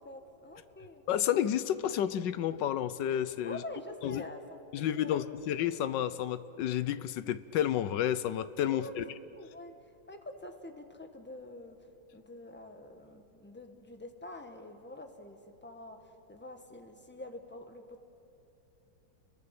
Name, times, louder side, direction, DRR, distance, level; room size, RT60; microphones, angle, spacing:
voice 1, 0.0-1.0 3.4-4.4 5.0-5.4 8.7-9.0 9.4-9.7 10.1-11.8 12.1-18.0, left 2 dB, 5° left, 5 dB, 1.1 m, -46 dB
voice 2, 1.1-3.6 4.0-4.2 4.7-9.0, left 10 dB, 70° left, 14 dB, 1.3 m, -31 dB
30.0 x 22.5 x 6.0 m, 2.9 s
omnidirectional pair, 2.2 m